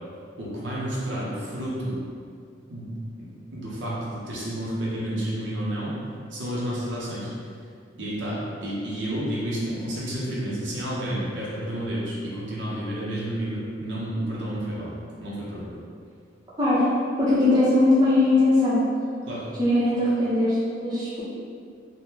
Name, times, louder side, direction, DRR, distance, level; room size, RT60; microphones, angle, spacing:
voice 1, 0.4-2.0 2.7-2.9 3.2-3.3 3.5-5.9 6.3-7.3 8.0-15.7 19.3-19.4, right 1 dB, 70° right, -7 dB, 0.7 m, -30 dB
voice 2, 17.2-18.8 19.6-21.2, left 2 dB, 20° right, -10 dB, 0.7 m, -20 dB
3.5 x 2.1 x 2.7 m, 2.3 s
head